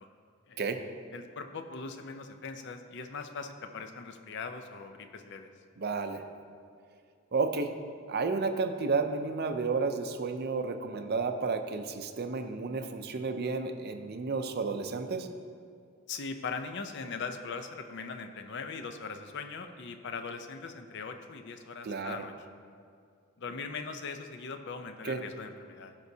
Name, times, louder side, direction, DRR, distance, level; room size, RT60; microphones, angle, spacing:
voice 1, 1.1-5.5 16.1-22.3 23.4-25.9, left 4 dB, 55° left, 7 dB, 0.6 m, -40 dB
voice 2, 5.8-6.2 7.3-7.7 8.1-15.3 21.8-22.2 25.0-25.2, right 4 dB, 45° right, 7 dB, 0.5 m, -31 dB
15.5 x 5.2 x 2.7 m, 2.2 s
head